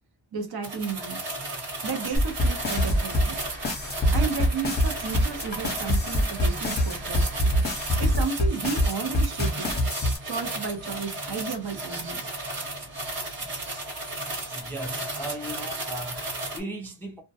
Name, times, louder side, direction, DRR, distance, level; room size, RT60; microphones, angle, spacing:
voice 1, 0.3-1.4 1.8-3.4 4.1-7.3 8.0-9.8 10.2-12.2 13.4-13.5, right 5 dB, 50° right, 0.6 m, -33 dB
sound 1, 0.6-16.6, right 2 dB, 85° right, 1.2 m, -34 dB
Truck / Idling, 2.1-8.2, right 1 dB, 15° right, 0.8 m, -42 dB
sound 2, 2.2-10.2, equal, 20° left, 0.8 m, -24 dB
voice 2, 14.5-17.2, right 1 dB, 5° left, 0.4 m, -37 dB
2.2 x 2.1 x 2.6 m
wide cardioid pair, 125°, 50 cm